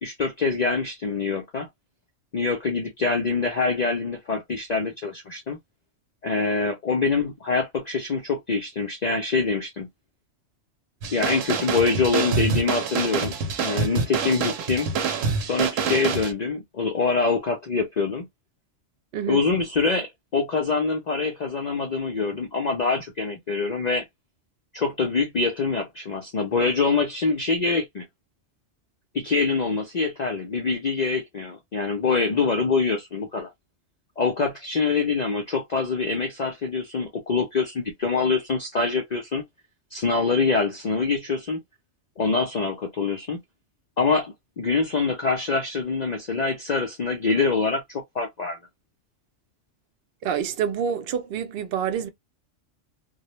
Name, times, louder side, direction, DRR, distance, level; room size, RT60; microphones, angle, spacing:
voice 1, 0.0-1.7 2.3-5.6 6.2-9.9 11.1-14.9 15.4-18.3 19.3-24.0 24.7-28.1 29.1-33.5 34.2-39.4 39.9-41.6 42.2-43.4 44.0-48.6, left 4 dB, 65° left, 0.4 m, -25 dB
sound 1, 11.0-16.3, right 5 dB, 80° right, 0.9 m, -26 dB
voice 2, 50.2-52.1, right 8 dB, 65° right, 0.6 m, -27 dB
2.2 x 2.1 x 2.9 m
omnidirectional pair, 1.3 m